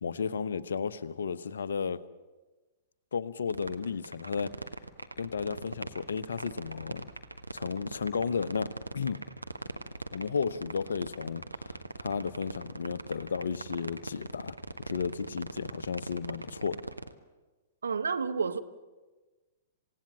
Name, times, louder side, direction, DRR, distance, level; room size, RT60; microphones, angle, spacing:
voice 1, 0.0-2.0 3.1-4.5 5.2-7.1 7.5-9.2 10.1-11.4 12.0-14.5 14.8-16.8, left 6 dB, 65° left, 0.9 m, -33 dB
sound 1, 3.5-17.1, right 2 dB, 90° right, 1.3 m, -39 dB
sound 2, 4.8-15.5, right 2 dB, 5° right, 5.1 m, -60 dB
voice 2, 17.8-18.6, right 5 dB, 75° right, 1.3 m, -30 dB
28.0 x 17.5 x 7.6 m
figure-of-eight pair, 110°, 0 cm